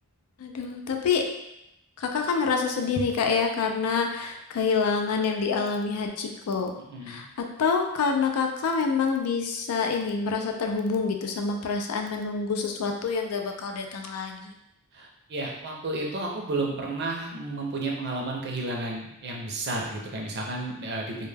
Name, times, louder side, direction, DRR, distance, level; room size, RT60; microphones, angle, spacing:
voice 1, 0.4-1.2 2.0-6.7 7.1-7.3 7.6-14.5, left 5 dB, 75° left, 3 dB, 0.4 m, -27 dB
voice 2, 6.9-7.2 14.9-21.3, right 2 dB, 50° right, -1 dB, 0.5 m, -32 dB
2.2 x 2.1 x 3.2 m, 0.85 s
head